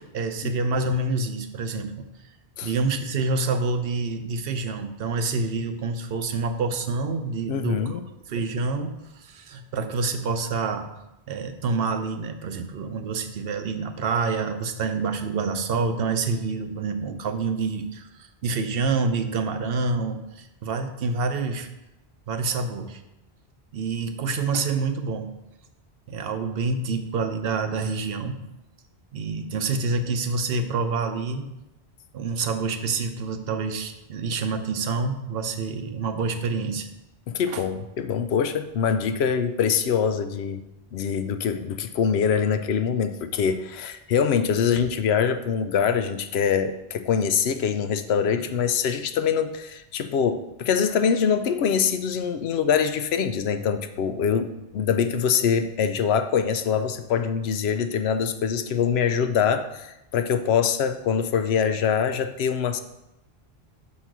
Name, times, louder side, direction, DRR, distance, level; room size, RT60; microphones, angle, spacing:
voice 1, 0.0-2.1 2.6-7.8 8.3-10.9 11.3-18.1 18.4-21.7 22.3-23.0 23.7-25.3 26.1-28.4 29.1-31.5 32.1-36.9 37.5-37.6, right 4 dB, 70° right, 8 dB, 0.8 m, -27 dB
voice 2, 7.5-8.0 37.3-40.6 40.9-62.8, left 7 dB, 90° left, 9 dB, 0.9 m, -24 dB
5.7 x 4.2 x 6.0 m, 0.93 s
omnidirectional pair, 1.0 m